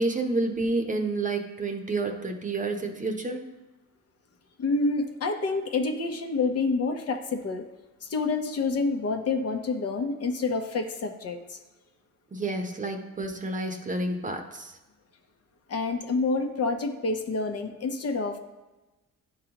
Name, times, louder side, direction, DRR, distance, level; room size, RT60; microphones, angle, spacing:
voice 1, 0.0-3.4 12.3-14.8, right 2 dB, 25° right, 3 dB, 0.8 m, -29 dB
voice 2, 4.6-7.7 8.0-11.6 15.7-18.4, left 3 dB, 55° left, 5 dB, 0.9 m, -28 dB
11.0 x 3.9 x 2.9 m, 1.1 s
cardioid pair, 90°, 30 cm